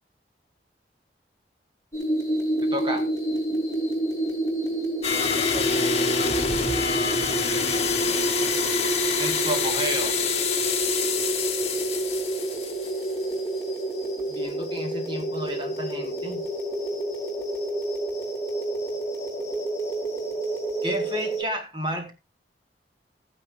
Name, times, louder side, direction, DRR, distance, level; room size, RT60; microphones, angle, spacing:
sound 1, 1.9-21.4, right 1 dB, 20° left, 3.6 m, -29 dB
voice 1, 2.6-3.1 9.2-10.2 14.3-16.4 20.8-22.1, right 1 dB, 25° right, 2.1 m, -31 dB
sound 2, 5.0-13.3, left 6 dB, 35° left, 1.9 m, -27 dB
voice 2, 5.1-8.4, right 1 dB, 85° right, 5.0 m, -43 dB
14.0 x 10.0 x 2.7 m
head